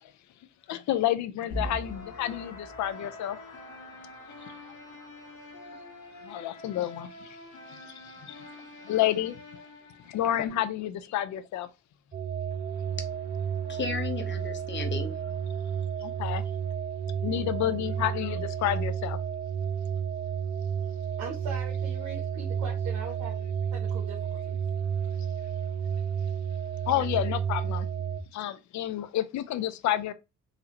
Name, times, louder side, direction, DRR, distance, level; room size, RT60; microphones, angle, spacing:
voice 1, 0.7-3.4 6.2-7.4 7.7-8.5 8.8-9.4 10.1-11.7 16.0-16.4 17.2-19.2 26.9-27.9 28.3-30.1, left 12 dB, 70° left, 0.5 m, -30 dB
sound 1, 1.5-10.5, left 1 dB, 85° left, 1.2 m, -43 dB
sound 2, 12.1-28.2, right 7 dB, 30° right, 0.6 m, -31 dB
voice 2, 12.7-15.8, left 5 dB, 40° left, 1.1 m, -37 dB
voice 3, 20.8-24.6, right 4 dB, 90° right, 1.0 m, -41 dB
4.1 x 2.7 x 2.8 m
cardioid pair, 90°, 30 cm